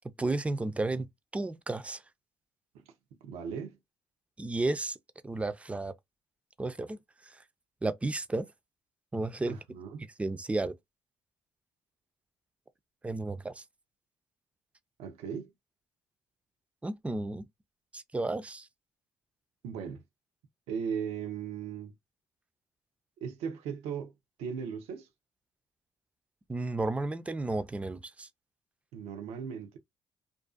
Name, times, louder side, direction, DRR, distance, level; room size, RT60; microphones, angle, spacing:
voice 1, 0.2-1.1 1.3-2.0 4.4-5.0 5.2-5.9 6.6-7.0 7.8-8.5 9.1-9.6 10.2-10.7 13.0-13.6 16.8-17.5 17.9-18.7 26.5-28.3, right 2 dB, 10° right, 0.4 m, -32 dB
voice 2, 3.2-3.8 9.5-10.1 15.0-15.5 19.6-20.0 20.7-21.9 23.2-24.1 24.4-25.1 28.9-29.8, right 7 dB, 85° right, 0.5 m, -37 dB
2.5 x 2.3 x 2.3 m
supercardioid pair, 75°, 10 cm